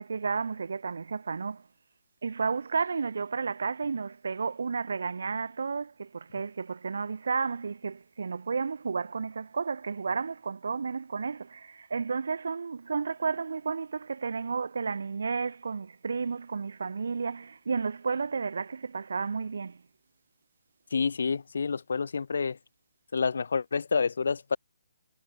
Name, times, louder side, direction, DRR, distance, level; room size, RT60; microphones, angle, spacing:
voice 1, 0.0-1.6 2.2-19.8, right 5 dB, 60° right, 1.8 m, -32 dB
voice 2, 20.9-22.6 23.1-24.6, left 5 dB, 55° left, 1.7 m, -28 dB
hypercardioid pair, 180°, 0 cm